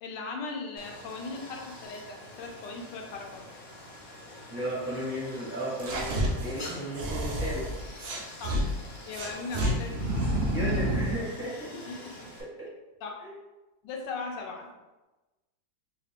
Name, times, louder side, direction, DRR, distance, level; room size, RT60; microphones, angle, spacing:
voice 1, 0.0-3.4 8.4-8.7 9.1-10.1 11.9-12.3 13.0-13.1 13.8-14.7, left 4 dB, 80° left, 1 dB, 1.3 m, -38 dB
Stream, 0.8-12.4, left 1 dB, 60° left, 0.6 m, -46 dB
voice 2, 4.5-7.7 10.4-11.9 12.4-12.7 13.2-13.3, equal, 15° right, -8 dB, 0.5 m, -35 dB
sound 1, 5.8-8.6 9.1-11.2, right 1 dB, 80° right, 0.5 m, -29 dB
3.4 x 2.4 x 3.3 m, 1.1 s
omnidirectional pair, 1.9 m